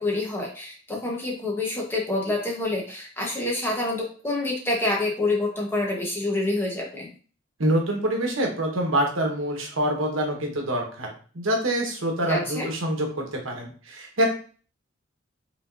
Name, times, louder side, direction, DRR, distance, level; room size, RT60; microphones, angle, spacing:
voice 1, 0.0-7.1 12.3-12.7, left 2 dB, 10° left, -2 dB, 1.1 m, -27 dB
voice 2, 7.6-14.2, right 1 dB, 85° right, 1 dB, 1.2 m, -26 dB
5.0 x 3.5 x 2.6 m, 0.40 s
head